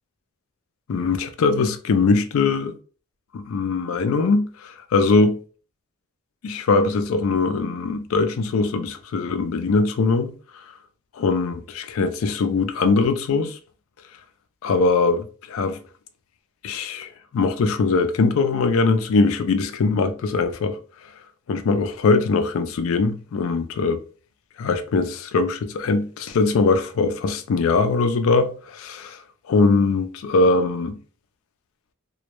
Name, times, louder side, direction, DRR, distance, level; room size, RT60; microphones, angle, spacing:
voice 1, 0.9-2.8 3.3-5.4 6.4-10.3 11.2-13.6 14.6-15.8 16.6-20.8 21.5-24.0 24.6-29.2 29.5-31.0, left 3 dB, 70° left, 0.3 m, -21 dB
2.2 x 2.0 x 2.9 m
head